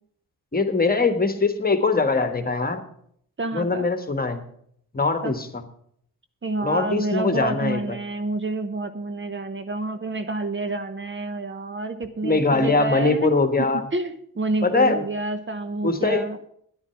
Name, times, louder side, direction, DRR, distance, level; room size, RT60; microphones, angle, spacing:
voice 1, 0.5-2.8 3.5-4.4 4.9-5.6 6.6-8.0 12.2-13.9 14.6-15.0 15.8-16.3, left 3 dB, 25° left, 8 dB, 1.5 m, -22 dB
voice 2, 3.4-3.9 5.2-5.4 6.4-13.3 13.6-13.7 13.9-16.4, right 3 dB, 35° right, 9 dB, 1.0 m, -28 dB
9.9 x 9.7 x 5.9 m, 0.67 s
cardioid pair, 65°, 34 cm